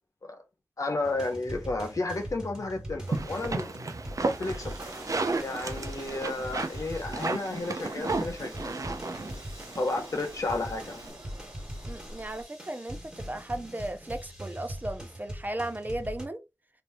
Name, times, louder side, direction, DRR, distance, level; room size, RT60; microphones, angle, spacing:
voice 1, 0.8-3.7 4.4-4.8 5.4-8.9 9.8-11.2, left 2 dB, 85° left, 0.8 m, -32 dB
sound 1, 1.0-16.3, equal, 15° right, 1.5 m, -42 dB
sound 2, 3.1-11.1, right 3 dB, 80° right, 0.5 m, -34 dB
sound 3, 4.8-12.4, right 1 dB, 65° right, 0.9 m, -48 dB
voice 2, 11.9-16.4, right 1 dB, 30° right, 0.5 m, -36 dB
3.3 x 2.6 x 2.7 m
wide cardioid pair, 60°, 6 cm